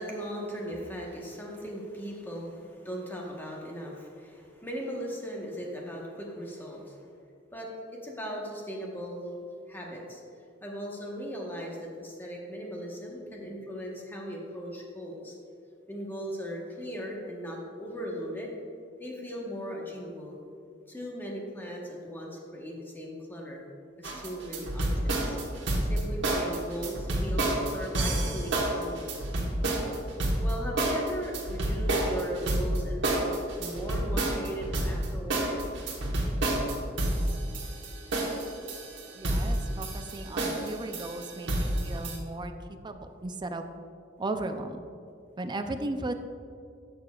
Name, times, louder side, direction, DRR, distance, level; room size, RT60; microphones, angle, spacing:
voice 1, 0.0-7.0 7.5-9.4 9.7-10.2 10.6-15.4 15.9-18.6 19.0-20.4 20.9-23.6 24.0-25.4 25.8-29.2 30.4-33.3 33.6-35.6, equal, 10° left, -2 dB, 1.1 m, -38 dB
sound 1, 24.0-42.2, right 1 dB, 70° right, 1.2 m, -29 dB
voice 2, 39.1-42.5 42.8-43.6 44.2-44.8 45.4-46.1, right 2 dB, 25° right, 7 dB, 0.4 m, -36 dB
11.0 x 6.9 x 2.3 m, 2.4 s
head